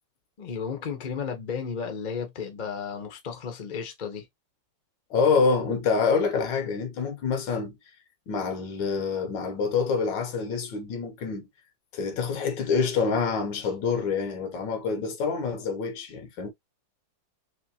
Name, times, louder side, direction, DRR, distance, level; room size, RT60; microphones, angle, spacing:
voice 1, 0.4-4.3, left 6 dB, 40° left, 0.7 m, -33 dB
voice 2, 5.1-7.8 8.3-11.5 11.9-16.5, left 5 dB, 75° left, 1.5 m, -26 dB
3.6 x 3.1 x 2.8 m
omnidirectional pair, 2.1 m